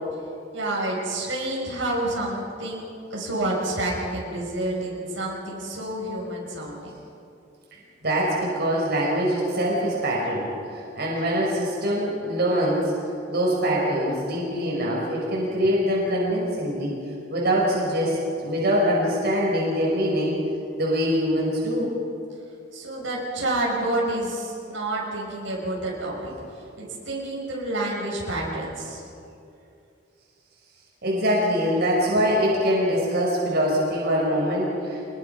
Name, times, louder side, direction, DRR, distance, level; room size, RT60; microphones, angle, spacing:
voice 1, 0.5-6.9 22.7-26.3 26.8-29.1, right 1 dB, 80° right, -3 dB, 6.1 m, -29 dB
voice 2, 8.0-12.9 13.3-17.0 17.3-20.3 20.8-21.9 31.0-35.1, equal, 60° right, -3 dB, 5.6 m, -23 dB
26.0 x 21.5 x 5.8 m, 2.6 s
head